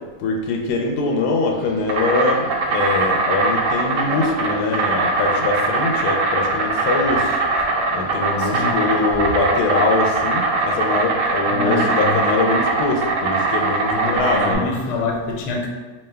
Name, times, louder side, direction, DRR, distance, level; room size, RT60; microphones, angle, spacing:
voice 1, 0.2-7.4 7.9-14.7, left 3 dB, 90° left, 2 dB, 1.1 m, -22 dB
Insect, 1.5-14.5, right 3 dB, 65° right, 0.9 m, -21 dB
voice 2, 8.4-8.8 11.5-12.2 13.9-15.7, left 4 dB, 60° left, 0 dB, 0.8 m, -26 dB
4.2 x 3.1 x 2.2 m, 1.3 s
omnidirectional pair, 1.6 m